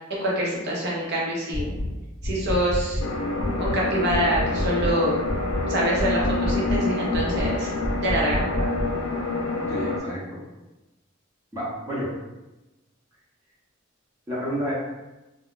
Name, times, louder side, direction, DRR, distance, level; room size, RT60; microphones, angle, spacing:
voice 1, 0.1-1.7 2.2-3.0 3.6-5.2 5.7-7.7 8.0-8.7, right 1 dB, 55° right, -4 dB, 0.8 m, -25 dB
sound 1, 1.5-1.9 2.2-3.1 3.4-3.8 4.1-5.0 5.3-5.7 6.0-6.8 7.1-7.5 7.8-8.9, left 1 dB, 85° right, 1.3 m, -28 dB
sound 2, 3.0-10.0, left 2 dB, 70° left, 0.4 m, -27 dB
voice 2, 9.7-10.4 11.5-12.1 14.3-14.7, equal, 15° right, -8 dB, 0.8 m, -30 dB
2.3 x 2.2 x 3.7 m, 1.0 s
head